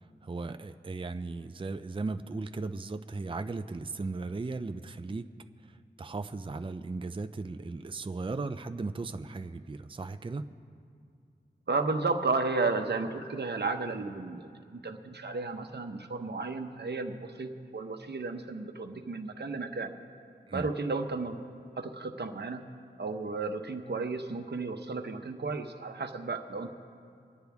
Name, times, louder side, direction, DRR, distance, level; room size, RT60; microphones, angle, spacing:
voice 1, 0.0-5.3 5.7-10.5 20.5-20.7, right 3 dB, 30° right, 8 dB, 0.5 m, -37 dB
voice 2, 11.7-14.4 14.7-19.9 20.5-21.4 21.8-22.6 23.0-26.7, right 3 dB, 65° right, 5 dB, 1.0 m, -33 dB
24.5 x 9.8 x 3.5 m, 2.4 s
wide cardioid pair, 60°, 19 cm